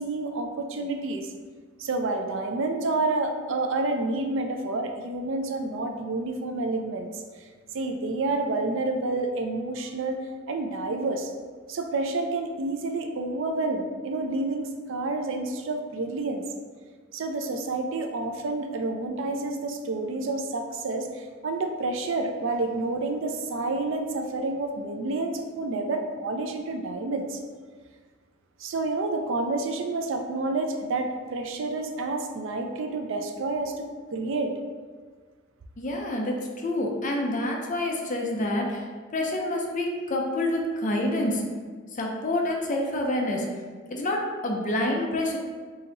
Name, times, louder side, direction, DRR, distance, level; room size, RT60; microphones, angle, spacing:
voice 1, 0.0-1.3 1.8-7.5 7.7-11.3 11.7-16.4 17.1-27.4 28.6-33.9 34.1-34.5, right 2 dB, 65° right, 5 dB, 0.4 m, -29 dB
voice 2, 35.8-38.8 39.1-41.4 42.0-43.5 43.9-45.4, left 1 dB, 40° left, 0 dB, 0.6 m, -27 dB
3.8 x 2.8 x 4.0 m, 1.5 s
head